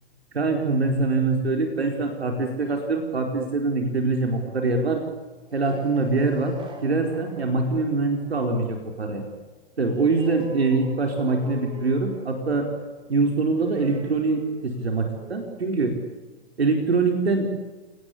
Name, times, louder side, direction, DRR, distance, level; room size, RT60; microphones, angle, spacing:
voice 1, 0.3-5.0 5.5-6.5 6.8-9.2 9.8-12.7 13.1-15.9 16.6-17.5, right 3 dB, 85° right, 2 dB, 4.8 m, -24 dB
sound 1, 5.4-16.6, right 3 dB, 15° right, 4.1 m, -44 dB
28.5 x 19.5 x 8.6 m, 1.2 s
hypercardioid pair, 120°, 31 cm